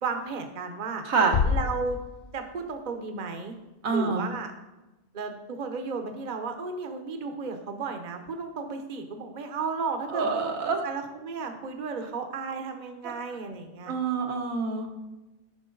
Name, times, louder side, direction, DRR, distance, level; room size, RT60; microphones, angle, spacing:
voice 1, 0.0-1.0 1.4-2.0 2.3-3.5 3.9-4.5 5.1-13.9, right 4 dB, 40° right, 6 dB, 0.9 m, -34 dB
voice 2, 1.1-1.4 3.8-4.2 10.1-10.8 13.0-13.1 13.9-14.9, right 4 dB, 85° right, 3 dB, 1.5 m, -26 dB
sound 1, 1.3-3.3, left 6 dB, 85° left, 0.4 m, -29 dB
10.5 x 6.0 x 3.8 m, 1.0 s
omnidirectional pair, 1.4 m